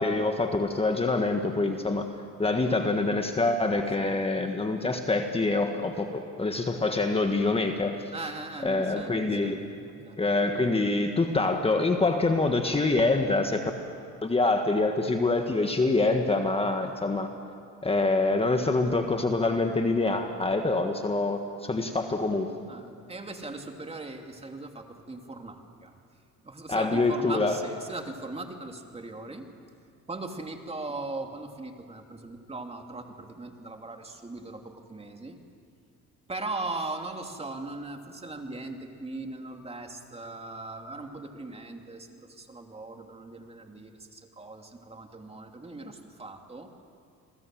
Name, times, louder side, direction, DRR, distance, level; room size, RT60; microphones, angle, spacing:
voice 1, 0.0-2.1 2.4-8.0 8.6-9.6 10.2-13.7 14.2-17.3 17.8-22.5 26.7-27.6, left 3 dB, 20° left, 5 dB, 1.6 m, -25 dB
voice 2, 8.1-10.2 22.7-25.9 26.4-29.5 30.1-35.4 36.3-46.8, right 2 dB, 20° right, 4 dB, 2.7 m, -39 dB
29.0 x 21.5 x 7.7 m, 2.4 s
cardioid pair, 105°, 31 cm